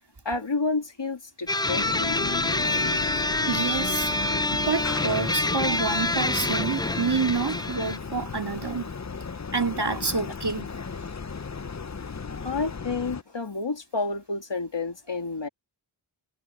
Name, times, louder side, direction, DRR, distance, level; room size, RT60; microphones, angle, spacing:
voice 1, 0.2-2.2 12.4-15.5, left 3 dB, 70° left, 2.8 m, -30 dB
sound 1, 1.5-8.0, left 2 dB, 10° left, 0.5 m, -27 dB
sound 2, 1.7-13.2, left 5 dB, 40° left, 0.8 m, -34 dB
voice 2, 3.5-4.1 4.5-8.9 9.5-10.7, right 4 dB, 60° right, 2.6 m, -28 dB
wide cardioid pair, 40°, 44 cm